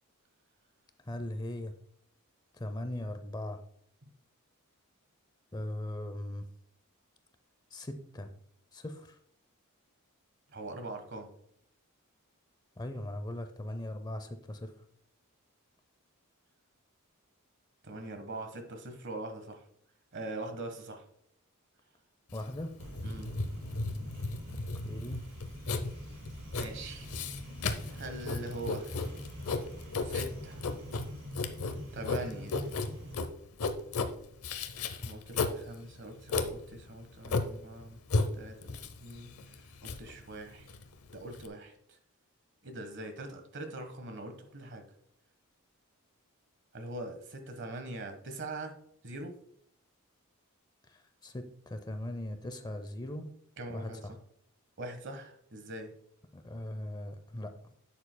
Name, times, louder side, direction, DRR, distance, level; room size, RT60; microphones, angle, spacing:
voice 1, 1.1-1.7 2.6-3.6 5.5-6.5 7.7-8.3 8.7-9.0 12.8-14.7 22.3-22.7 24.8-25.2 51.2-53.3 53.7-53.9 56.3-57.5, left 1 dB, 20° left, 8 dB, 0.5 m, -39 dB
voice 2, 10.5-11.3 17.8-19.6 20.1-21.0 23.0-23.3 26.5-27.1 27.8-28.9 30.0-30.7 31.9-32.6 35.0-40.7 41.1-42.0 42.6-44.8 46.7-48.8 49.0-49.3 53.6-54.2 54.8-55.9, right 2 dB, 55° right, 7 dB, 1.3 m, -42 dB
Writing, 22.3-41.5, left 3 dB, 75° left, 0.7 m, -35 dB
sound 1, 22.8-33.2, equal, 70° right, 2.5 m, -45 dB
11.0 x 7.2 x 2.2 m, 0.68 s
head